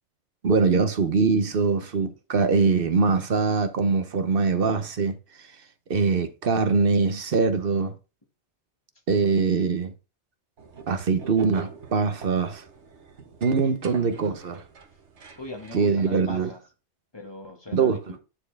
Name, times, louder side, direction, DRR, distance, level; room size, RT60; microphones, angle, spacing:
voice 1, 0.4-5.2 5.9-7.9 9.1-9.9 10.9-12.6 13.4-14.6 15.7-16.5 17.7-18.0, right 4 dB, 55° right, 1.0 m, -23 dB
sound 1, 10.6-15.9, right 5 dB, 90° right, 1.5 m, -44 dB
voice 2, 15.4-16.6 17.1-18.2, left 2 dB, 25° left, 1.5 m, -40 dB
9.7 x 4.4 x 3.4 m
omnidirectional pair, 1.2 m